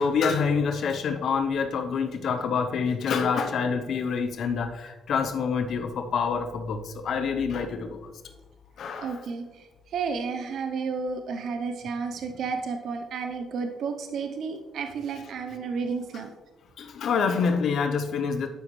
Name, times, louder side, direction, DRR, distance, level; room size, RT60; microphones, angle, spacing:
voice 1, 0.0-8.0 8.8-9.2 16.8-18.5, left 5 dB, 65° left, 7 dB, 0.6 m, -26 dB
voice 2, 9.0-9.6 9.9-16.3, right 5 dB, 70° right, 6 dB, 0.6 m, -32 dB
11.5 x 5.0 x 3.1 m, 1.2 s
cardioid pair, 90°, 0 cm